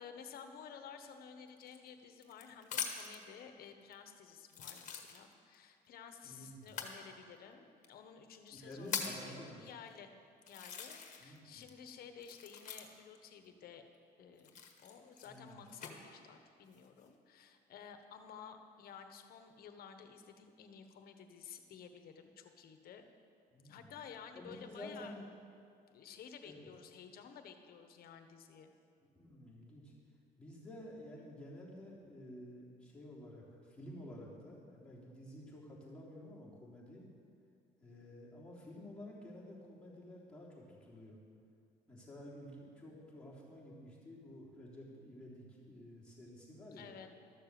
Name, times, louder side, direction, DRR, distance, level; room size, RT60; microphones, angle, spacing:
voice 1, 0.0-10.1 10.5-13.9 14.2-23.0 23.6-25.2 25.9-28.7 46.7-47.1, left 7 dB, 65° left, 7 dB, 1.1 m, -53 dB
sound 1, 1.6-3.2 3.9-4.0 4.5-5.6 6.6-7.0 7.8-7.9 8.5-9.3 10.0-10.1 10.5-11.4 11.6-13.2 14.4-15.9 16.6-17.1, left 7 dB, 45° left, 1.4 m, -43 dB
voice 2, 6.2-6.7 8.5-9.6 11.2-11.7 15.2-15.5 23.5-23.9 24.3-25.3 26.4-26.7 29.0-29.9 30.4-37.1 37.8-41.2 41.9-46.9, left 1 dB, 5° left, -7 dB, 3.5 m, -51 dB
13.0 x 6.8 x 7.6 m, 2.4 s
cardioid pair, 110°, 17 cm